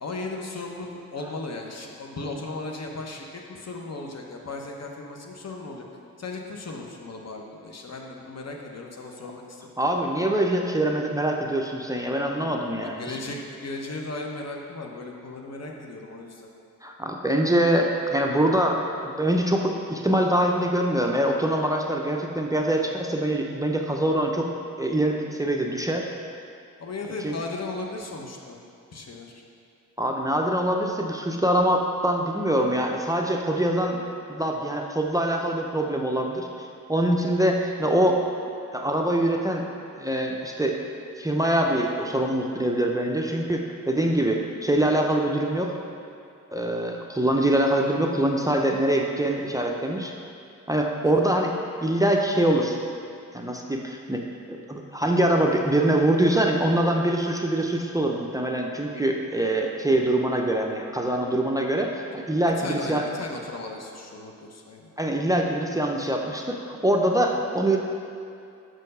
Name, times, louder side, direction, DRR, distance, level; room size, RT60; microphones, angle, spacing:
voice 1, 0.0-5.8 6.2-9.7 12.8-16.5 26.8-28.6 28.9-29.4 51.0-51.2 62.6-64.9, left 2 dB, 50° left, 1 dB, 0.9 m, -36 dB
voice 2, 9.8-13.0 16.8-24.5 24.8-26.1 27.2-27.3 30.0-34.0 34.3-38.2 38.7-39.7 40.0-40.7 41.2-45.7 46.5-50.1 50.7-51.5 51.8-52.8 53.3-54.2 54.5-63.0 65.0-67.8, right 1 dB, 10° right, 1 dB, 0.6 m, -24 dB
6.3 x 4.4 x 5.4 m, 2.5 s
cardioid pair, 55°, 34 cm